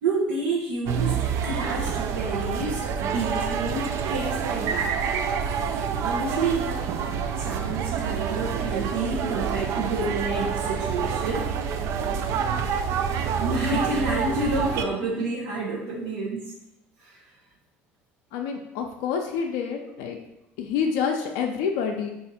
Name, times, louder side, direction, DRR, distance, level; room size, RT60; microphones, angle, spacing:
voice 1, 0.0-4.9 6.0-6.8 7.3-11.5 13.3-16.5 17.0-17.2, right 2 dB, 85° right, -6 dB, 0.7 m, -29 dB
sound 1, 0.8-14.8, right 7 dB, 60° right, 0.4 m, -27 dB
voice 2, 18.3-20.2 20.6-22.1, left 6 dB, 80° left, 3 dB, 0.4 m, -27 dB
4.1 x 2.4 x 4.0 m, 0.88 s
supercardioid pair, 85°, 6 cm